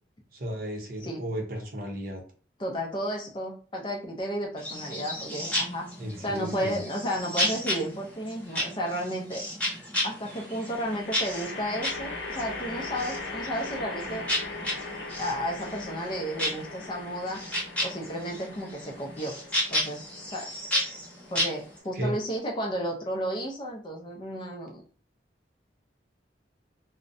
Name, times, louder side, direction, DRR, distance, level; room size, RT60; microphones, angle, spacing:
voice 1, 0.3-2.2 6.0-6.8 21.9-22.2, equal, 50° right, 1 dB, 0.6 m, -34 dB
voice 2, 2.6-5.9 6.2-9.4 10.0-14.3 15.2-17.4 17.8-19.4 19.7-20.0 20.3-20.5 21.3-24.8, equal, 25° left, 0 dB, 0.4 m, -33 dB
sound 1, 4.6-21.8, left 1 dB, 5° left, 0.9 m, -33 dB
sound 2, 7.5-8.1 10.6-22.0, left 3 dB, 80° left, 0.6 m, -40 dB
2.5 x 2.0 x 2.5 m, 0.39 s
head